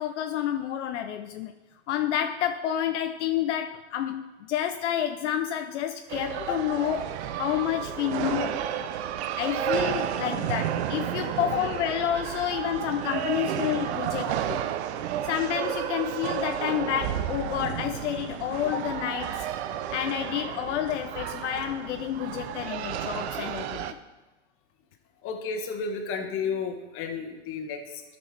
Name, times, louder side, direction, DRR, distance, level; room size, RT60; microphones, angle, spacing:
voice 1, 0.0-1.5 1.9-8.6 9.3-14.7 15.2-19.5 19.9-23.9, left 10 dB, 70° left, 8 dB, 0.6 m, -29 dB
sound 1, 6.1-23.9, right 10 dB, 65° right, 0.7 m, -32 dB
voice 2, 25.2-28.0, left 5 dB, 35° left, 3 dB, 1.4 m, -33 dB
13.0 x 5.9 x 3.4 m, 1.1 s
hypercardioid pair, 125°, 36 cm